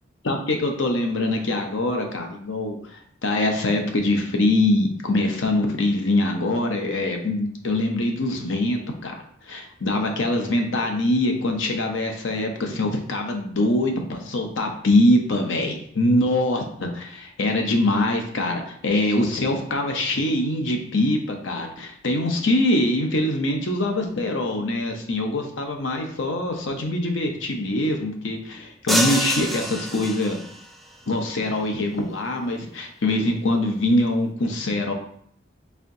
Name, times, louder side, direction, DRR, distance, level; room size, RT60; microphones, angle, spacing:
voice 1, 0.2-9.2 9.5-30.4 31.1-34.9, left 1 dB, 90° left, 3 dB, 0.7 m, -23 dB
sound 1, 28.9-30.7, right 1 dB, ahead, 0.3 m, -26 dB
4.2 x 3.5 x 2.7 m, 0.64 s
head